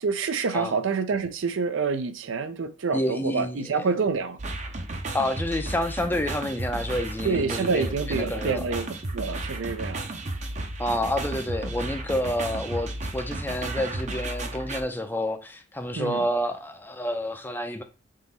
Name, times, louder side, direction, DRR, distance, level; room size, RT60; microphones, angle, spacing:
voice 1, 0.0-4.4 7.2-10.0 15.9-16.3, right 4 dB, 80° right, 0.5 m, -27 dB
voice 2, 2.9-3.8 5.1-8.6 10.8-17.8, left 1 dB, 10° left, 0.4 m, -29 dB
sound 1, 4.4-14.8, right 2 dB, 40° right, 0.6 m, -33 dB
3.7 x 2.9 x 4.1 m
head